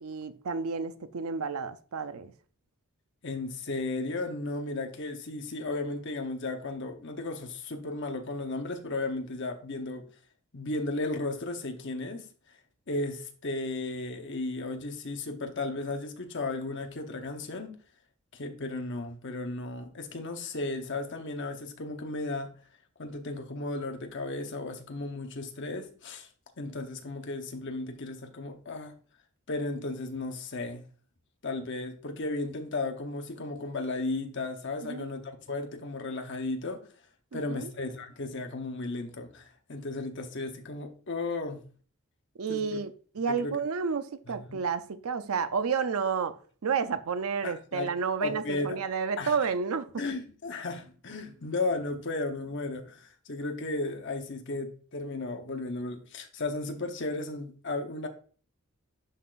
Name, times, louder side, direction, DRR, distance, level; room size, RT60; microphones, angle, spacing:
voice 1, 0.0-2.3 34.8-35.1 37.3-37.7 42.4-46.4 46.6-49.9, right 5 dB, 75° right, 0.5 m, -31 dB
voice 2, 3.2-10.1 10.5-12.3 12.9-17.7 18.3-22.5 23.0-26.3 26.6-28.9 29.5-30.8 31.4-36.8 37.3-41.6 42.5-42.8 43.3-43.6 44.3-44.6 47.4-47.9 48.2-48.8 49.2-49.4 50.0-58.1, left 2 dB, 55° left, 0.9 m, -35 dB
11.0 x 3.9 x 2.5 m
head